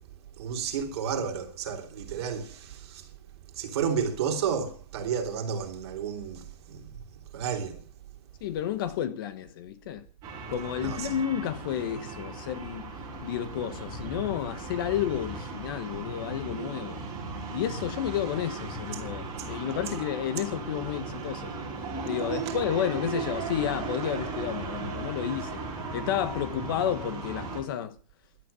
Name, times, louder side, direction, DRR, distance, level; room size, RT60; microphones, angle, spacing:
voice 1, 0.4-3.1 3.6-6.9 7.3-7.8 10.8-11.1 22.4-22.5, right 7 dB, 40° right, 3.2 m, -31 dB
voice 2, 8.4-10.0 10.5-12.9 13.2-17.0 17.5-21.5 22.0-25.6 25.9-28.0, left 10 dB, 35° left, 1.1 m, -31 dB
Muezzin on a busy street in Giza (long recording), 10.2-27.6, right 4 dB, 20° right, 5.5 m, -37 dB
16.5 x 12.0 x 6.8 m
hypercardioid pair, 170°, 21 cm